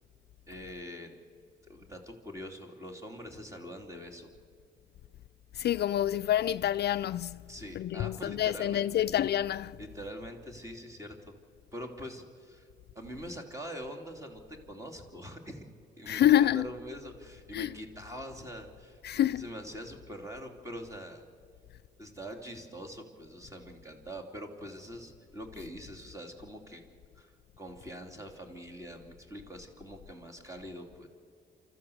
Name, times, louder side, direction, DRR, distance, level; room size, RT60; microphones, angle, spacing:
voice 1, 0.5-1.1 1.7-4.3 7.5-9.1 9.8-11.3 11.7-12.7 12.9-15.6 16.0-21.2 22.0-26.8 27.1-31.1, equal, 15° right, 3.0 m, -44 dB
voice 2, 5.5-9.8 16.1-16.7 17.5-17.7 19.0-19.4, left 12 dB, 55° left, 0.4 m, -27 dB
28.5 x 13.5 x 7.1 m
cardioid pair, 90°, 20 cm